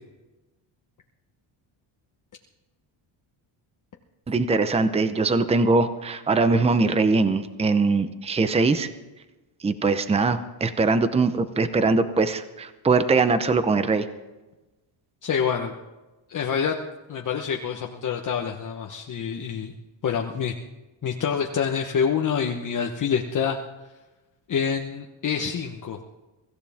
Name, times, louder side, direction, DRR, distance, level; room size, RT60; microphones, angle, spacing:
voice 1, 4.3-8.9 9.6-14.1, right 3 dB, 15° right, 11 dB, 0.8 m, -22 dB
voice 2, 15.2-15.7 16.3-16.8 17.1-19.7 20.0-20.5 21.0-23.6 24.5-26.0, left 7 dB, 40° left, 2 dB, 1.1 m, -26 dB
24.0 x 15.0 x 3.6 m, 1.1 s
cardioid pair, 135°, 47 cm